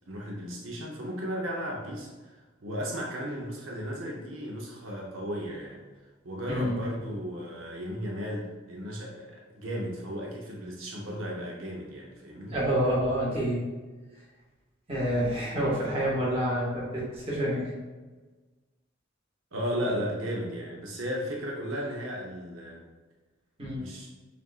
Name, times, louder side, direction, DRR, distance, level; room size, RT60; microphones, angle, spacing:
voice 1, 0.1-5.8 6.2-12.6 19.5-22.8 23.7-24.1, equal, 75° right, -2 dB, 0.7 m, -35 dB
voice 2, 12.5-13.6 14.9-17.7 23.6-23.8, equal, 30° right, -6 dB, 1.4 m, -28 dB
6.6 x 2.6 x 2.3 m, 1.3 s
head